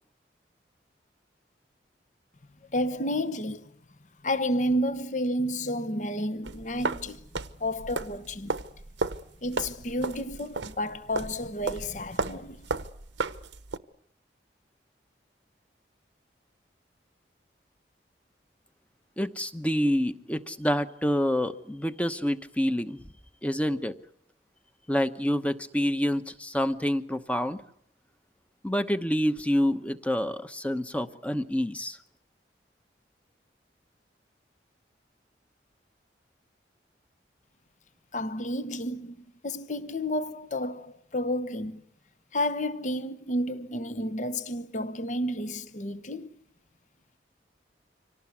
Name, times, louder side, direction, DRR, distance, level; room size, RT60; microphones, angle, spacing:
voice 1, 2.7-3.7 4.2-7.2 7.6-8.6 9.4-12.6 38.1-39.2 39.4-41.8 42.3-46.4, left 1 dB, 40° left, 1.0 m, -31 dB
sound 1, 6.4-13.8, right 3 dB, 90° right, 1.1 m, -34 dB
voice 2, 19.2-23.0 23.4-24.0 24.9-27.6 28.6-32.0, equal, 5° left, 1.0 m, -27 dB
25.5 x 18.0 x 9.6 m
head